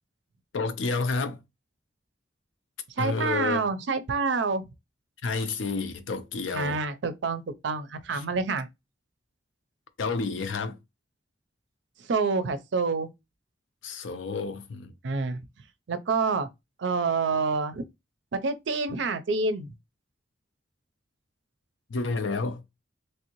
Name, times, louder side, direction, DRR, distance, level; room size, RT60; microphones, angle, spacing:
voice 1, 0.5-1.4 3.0-3.6 5.2-6.8 8.1-8.2 10.0-10.8 13.8-14.9 21.9-22.6, left 4 dB, 80° left, 0.5 m, -30 dB
voice 2, 3.0-4.7 6.5-8.7 12.1-13.1 15.0-15.4 15.9-16.5 16.8-17.8 18.4-19.7, right 4 dB, 70° right, 0.5 m, -27 dB
3.2 x 2.6 x 2.9 m
head